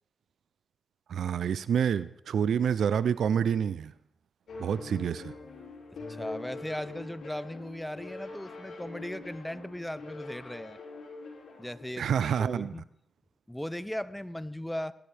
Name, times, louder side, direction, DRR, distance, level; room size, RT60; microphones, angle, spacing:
voice 1, 1.1-3.9 4.6-5.3 12.0-12.7, right 8 dB, 85° right, 17 dB, 0.4 m, -28 dB
sound 1, 4.5-11.9, left 3 dB, 85° left, 4.0 m, -44 dB
voice 2, 6.1-10.8 11.6-12.9 13.5-14.9, left 1 dB, 10° left, 15 dB, 0.7 m, -38 dB
18.5 x 12.0 x 3.4 m, 0.75 s
cardioid pair, 60°, 0 cm